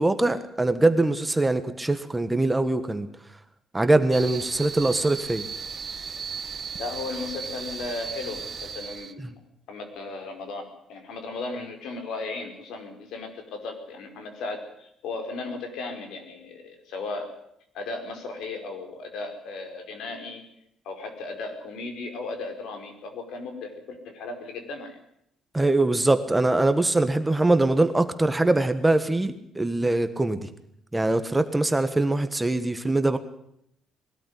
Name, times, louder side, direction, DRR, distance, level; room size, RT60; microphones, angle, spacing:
voice 1, 0.0-3.1 3.7-5.4 25.5-30.5 30.9-33.2, right 2 dB, 10° right, 10 dB, 1.4 m, -22 dB
sound 1, 4.1-9.1, right 6 dB, 35° right, 1.4 m, -36 dB
voice 2, 6.8-9.4 9.7-17.3 17.7-20.4 20.8-24.9, left 3 dB, 80° left, 5 dB, 5.0 m, -36 dB
20.5 x 13.5 x 9.7 m, 0.74 s
cardioid pair, 135°, 0 cm